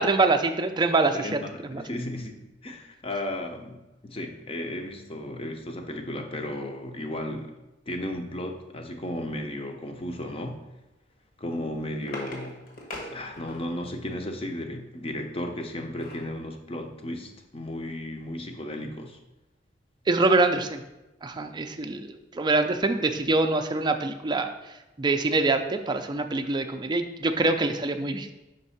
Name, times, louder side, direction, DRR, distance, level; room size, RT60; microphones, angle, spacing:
voice 1, 0.0-1.8 20.1-20.8 21.2-24.5 25.0-28.3, right 3 dB, 25° right, 6 dB, 0.4 m, -25 dB
voice 2, 1.1-7.5 7.9-10.6 11.4-12.6 13.1-19.2, left 1 dB, 30° left, 4 dB, 0.7 m, -34 dB
sound 1, 11.4-13.9 15.5-16.3 16.8-16.9 17.2-17.4, left 2 dB, 55° left, 1.2 m, -41 dB
5.2 x 3.6 x 5.6 m, 1.0 s
head